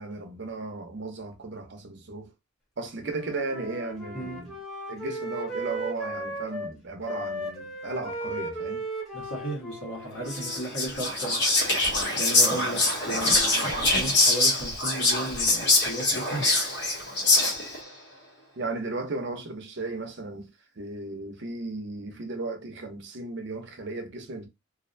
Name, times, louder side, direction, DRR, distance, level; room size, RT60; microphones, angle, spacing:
voice 1, 0.0-2.3 2.8-4.5 4.9-8.8 18.6-20.5 20.8-24.5, right 3 dB, 55° right, 0.6 m, -35 dB
Wind instrument woodwind instrument, 3.0-6.7 7.0-11.2, right 1 dB, ahead, 0.7 m, -36 dB
voice 2, 9.1-11.4 12.1-16.4, right 1 dB, 90° left, 1.1 m, -35 dB
Whispering, 10.3-17.8, left 2 dB, 50° left, 0.8 m, -24 dB
2.5 x 2.1 x 2.5 m
head